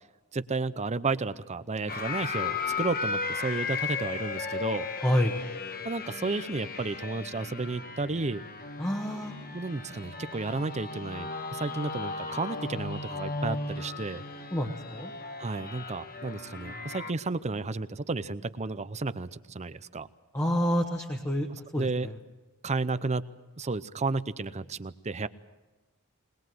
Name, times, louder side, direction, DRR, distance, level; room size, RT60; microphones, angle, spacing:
voice 1, 0.3-4.9 5.8-8.5 9.5-14.2 15.4-20.1 21.5-22.1 22.6-23.3 23.6-25.3, right 3 dB, 30° right, 14 dB, 0.7 m, -32 dB
sound 1, 1.9-17.1, left 4 dB, 45° left, 1.3 m, -36 dB
voice 2, 5.0-5.4 8.8-9.3 14.5-15.1 20.3-22.1, equal, 15° left, 0 dB, 1.3 m, -28 dB
21.0 x 21.0 x 7.7 m, 1.1 s
head